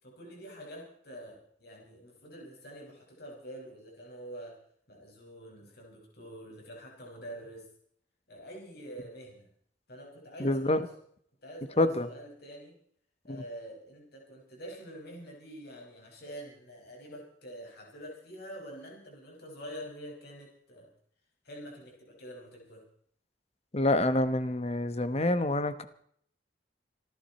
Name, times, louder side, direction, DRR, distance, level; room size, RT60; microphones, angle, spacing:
voice 1, 0.0-4.5 4.9-7.7 8.3-9.5 9.9-10.8 11.4-12.7 13.2-20.9 21.4-22.8, equal, 60° left, -1 dB, 5.8 m, -46 dB
voice 2, 10.4-10.8 11.8-12.1 13.3-13.4 23.7-25.8, left 1 dB, 35° left, 11 dB, 1.1 m, -27 dB
27.5 x 11.0 x 4.3 m, 0.63 s
head